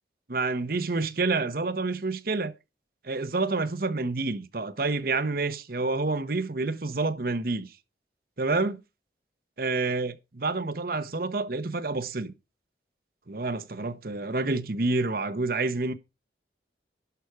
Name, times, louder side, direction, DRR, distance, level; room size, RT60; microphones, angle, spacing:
voice 1, 0.3-2.5 3.0-7.7 8.4-8.8 9.6-12.3 13.3-15.9, right 3 dB, 55° right, 0.9 m, -28 dB
11.5 x 5.9 x 4.7 m
head